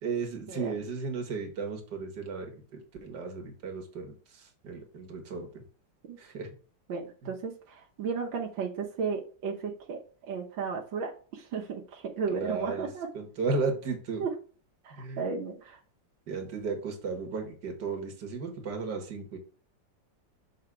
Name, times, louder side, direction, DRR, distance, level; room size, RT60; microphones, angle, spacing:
voice 1, 0.0-2.6 3.0-5.6 6.2-6.5 7.2-7.3 12.3-12.9 13.1-14.2 15.0-15.3 16.3-19.4, right 4 dB, 65° right, 3 dB, 2.1 m, -34 dB
voice 2, 6.9-10.0 10.3-13.1 14.2-14.3 14.8-15.8, right 5 dB, 90° right, 0 dB, 1.8 m, -34 dB
6.4 x 4.0 x 4.7 m, 0.40 s
omnidirectional pair, 2.0 m